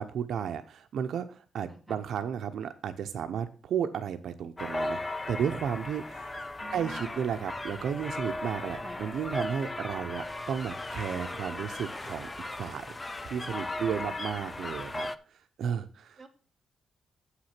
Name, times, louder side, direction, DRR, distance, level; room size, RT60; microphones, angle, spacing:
voice 1, 0.0-5.0 5.3-6.3 6.7-12.3 12.6-13.0 13.2-15.1 15.6-16.2, right 8 dB, 60° right, 8 dB, 0.6 m, -33 dB
voice 2, 1.7-2.0 6.6-7.1 8.8-9.1 13.4-14.2 16.2-16.3, right 2 dB, 5° right, 1 dB, 1.3 m, -48 dB
sound 1, 4.6-15.2, left 2 dB, 15° left, 0.4 m, -37 dB
8.0 x 5.9 x 5.8 m, 0.39 s
wide cardioid pair, 180°, 0 cm